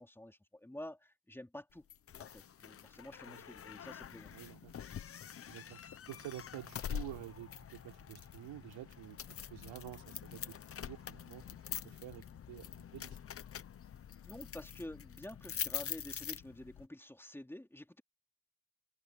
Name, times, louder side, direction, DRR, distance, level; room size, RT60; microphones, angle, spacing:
voice 1, 0.0-1.9 2.2-4.3 14.2-18.0, left 1 dB, 5° left, 3.6 m, -49 dB
sound 1, 1.9-16.9, left 9 dB, 30° left, 0.8 m, -45 dB
voice 2, 4.3-4.7 5.5-5.8 6.1-11.4 11.8-13.2, right 14 dB, 85° right, 3.9 m, -49 dB
cardioid pair, 165°, 45 cm